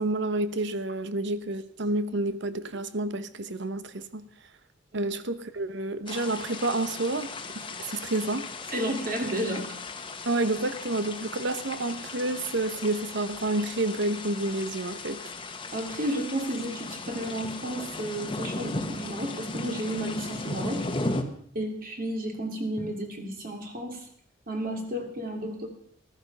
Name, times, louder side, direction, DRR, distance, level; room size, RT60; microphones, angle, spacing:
voice 1, 0.0-4.3 4.9-7.3 7.5-8.5 10.3-15.2, right 2 dB, 65° right, 1.0 m, -29 dB
sound 1, 6.1-21.2, left 3 dB, 25° left, 1.2 m, -36 dB
voice 2, 8.7-9.8 15.7-20.8 21.5-24.1 24.5-25.7, right 1 dB, 50° right, 2.8 m, -32 dB
14.5 x 13.0 x 5.5 m
head